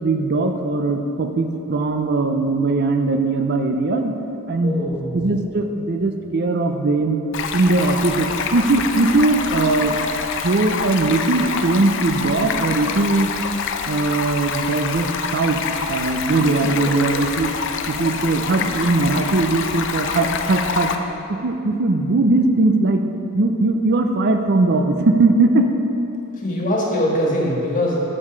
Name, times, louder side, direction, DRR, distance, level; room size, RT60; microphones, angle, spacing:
voice 1, 0.0-4.1 4.5-4.8 5.1-7.2 7.5-9.9 10.4-13.3 13.9-15.6 15.9-17.5 17.9-20.9 21.4-23.0 23.3-25.7, right 2 dB, 50° right, 5 dB, 0.5 m, -19 dB
voice 2, 4.6-5.3 16.9-17.1 26.3-28.0, left 1 dB, 35° left, -3 dB, 1.6 m, -22 dB
Stream, 7.3-21.0, left 5 dB, 60° left, 0.5 m, -26 dB
8.8 x 6.5 x 5.1 m, 2.9 s
head